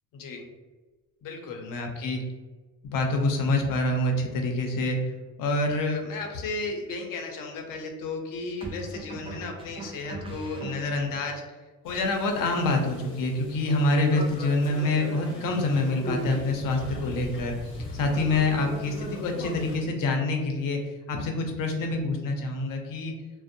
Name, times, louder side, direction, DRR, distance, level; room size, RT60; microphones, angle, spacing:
voice 1, 0.1-0.5 1.2-2.2 2.8-5.0 5.4-11.4 11.8-17.6 17.9-20.8 21.1-23.1, left 2 dB, 60° left, 3 dB, 0.6 m, -27 dB
sound 1, 5.9-6.2 8.6-11.3, right 2 dB, 15° right, 0.3 m, -40 dB
sound 2, 11.8-19.8, left 1 dB, 35° left, 0.8 m, -38 dB
2.4 x 2.1 x 2.6 m, 1.3 s
cardioid pair, 115°, 37 cm